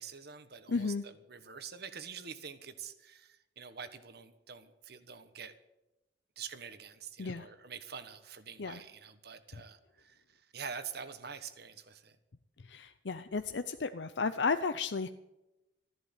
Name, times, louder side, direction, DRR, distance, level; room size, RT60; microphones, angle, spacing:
voice 1, 0.0-5.5 6.4-12.2, right 6 dB, 60° right, 11 dB, 1.4 m, -46 dB
voice 2, 0.7-1.0 7.2-7.5 8.6-8.8 9.5-9.6 12.6-15.1, left 4 dB, 75° left, 10 dB, 0.6 m, -33 dB
14.0 x 11.0 x 8.3 m, 0.96 s
head